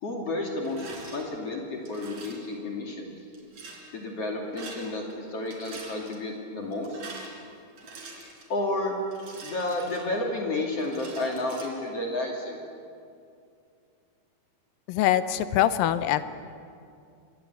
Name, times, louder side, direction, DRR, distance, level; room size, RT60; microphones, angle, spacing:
voice 1, 0.0-3.1 3.9-7.0 8.5-9.0 9.4-12.6, left 2 dB, 45° left, 0 dB, 3.4 m, -31 dB
Rattle, 0.6-1.2 1.9-2.5 3.3-3.8 4.4-5.2 5.4-6.2 6.7-8.5 9.1-10.4 10.8-11.7, right 3 dB, 55° right, 4.7 m, -44 dB
voice 2, 14.9-16.2, left 12 dB, 85° left, 12 dB, 2.6 m, -23 dB
28.0 x 22.0 x 8.2 m, 2.4 s
omnidirectional pair, 4.0 m